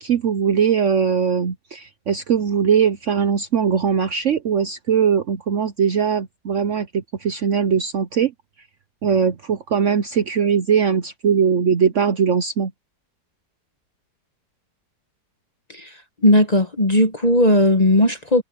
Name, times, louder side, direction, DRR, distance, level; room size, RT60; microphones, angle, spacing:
voice 1, 0.0-8.3 9.0-12.7, right 7 dB, 55° right, 0.9 m, -20 dB
voice 2, 15.7-18.4, left 1 dB, 25° left, 1.1 m, -17 dB
omnidirectional pair, 1.9 m